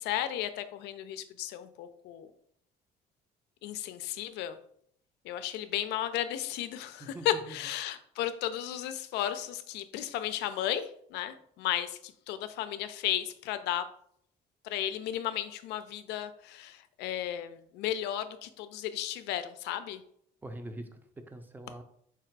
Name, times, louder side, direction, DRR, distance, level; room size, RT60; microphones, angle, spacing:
voice 1, 0.0-2.3 3.6-4.6 5.2-13.9 14.6-20.0, left 11 dB, 85° left, 11 dB, 0.5 m, -34 dB
voice 2, 7.0-7.6 20.4-21.8, right 1 dB, 10° right, 7 dB, 0.6 m, -44 dB
4.7 x 2.4 x 4.5 m, 0.66 s
cardioid pair, 110°, 17 cm